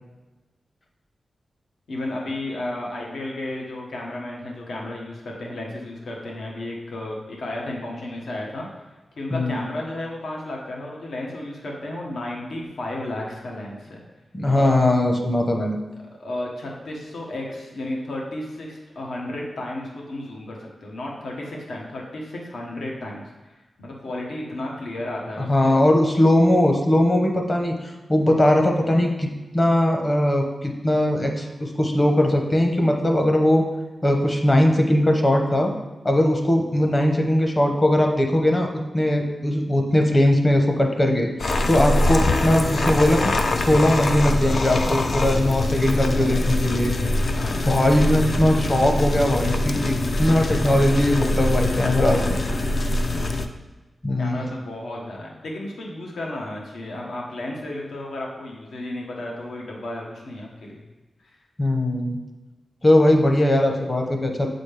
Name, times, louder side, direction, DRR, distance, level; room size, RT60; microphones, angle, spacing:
voice 1, 1.9-8.7 9.2-14.0 14.5-14.7 16.2-23.2 23.5-25.8 47.3-47.7 54.2-60.8, left 1 dB, 80° left, -2 dB, 1.1 m, -33 dB
voice 2, 14.3-15.8 25.4-33.7 34.0-35.7 36.0-38.7 38.9-41.3 41.7-46.9 47.7-52.4 54.0-54.4 61.6-62.2 62.8-64.5, left 1 dB, 30° left, 3 dB, 0.9 m, -20 dB
sound 1, 41.4-53.5, left 2 dB, 50° left, 0.4 m, -23 dB
7.8 x 4.1 x 3.3 m, 1.2 s
wide cardioid pair, 105°, 0 cm